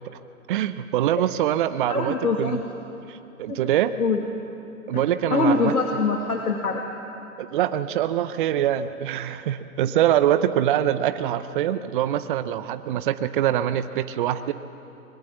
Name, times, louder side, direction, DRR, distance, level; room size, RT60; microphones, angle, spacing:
voice 1, 0.5-2.6 3.1-3.9 4.9-5.7 7.4-14.5, right 11 dB, 35° right, 12 dB, 0.7 m, -24 dB
voice 2, 1.9-2.6 3.5-3.6 4.0-4.2 4.9-5.0 5.3-6.8, left 3 dB, 90° left, 2 dB, 2.0 m, -23 dB
25.0 x 21.0 x 7.3 m, 2.8 s
hypercardioid pair, 130°, 43 cm